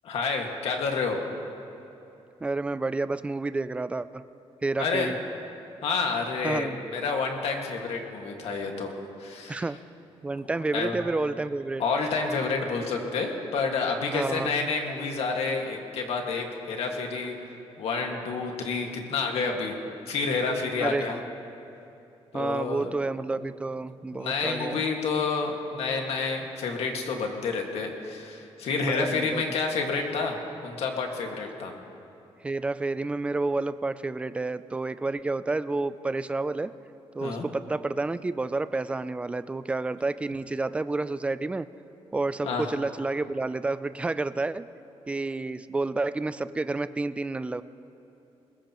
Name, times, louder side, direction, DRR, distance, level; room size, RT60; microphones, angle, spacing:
voice 1, 0.0-1.2 4.8-5.1 5.8-8.9 9.2-9.6 10.7-11.0 11.8-17.4 17.8-19.7 20.1-21.2 22.3-22.9 23.4-23.5 24.1-30.4 30.6-31.7 37.2-37.5 42.4-42.7, left 4 dB, 75° left, 2 dB, 1.8 m, -29 dB
voice 2, 2.4-4.2 4.6-5.2 6.4-6.8 9.5-9.8 10.2-11.8 14.1-14.7 20.8-21.3 22.3-24.9 28.8-29.4 32.4-36.7 37.1-41.7 42.1-44.7 45.1-47.6, right 3 dB, 10° right, 14 dB, 0.3 m, -30 dB
21.0 x 20.0 x 3.0 m, 2.9 s
wide cardioid pair, 170°, 11 cm